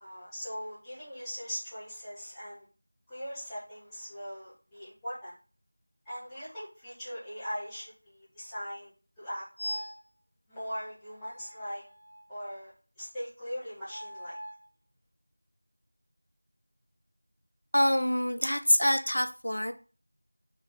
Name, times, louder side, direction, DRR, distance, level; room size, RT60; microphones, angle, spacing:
voice 1, 0.0-2.6 3.1-5.3 6.1-8.9 9.2-9.5 10.5-11.8 12.3-14.4, equal, 5° left, 0.4 m, -40 dB
sound 1, 9.6-10.1 11.2-12.5 13.8-14.7, equal, 40° left, 1.0 m, -41 dB
voice 2, 17.7-19.7, equal, 80° left, 0.3 m, -25 dB
2.3 x 2.3 x 3.5 m
figure-of-eight pair, 180°, 0 cm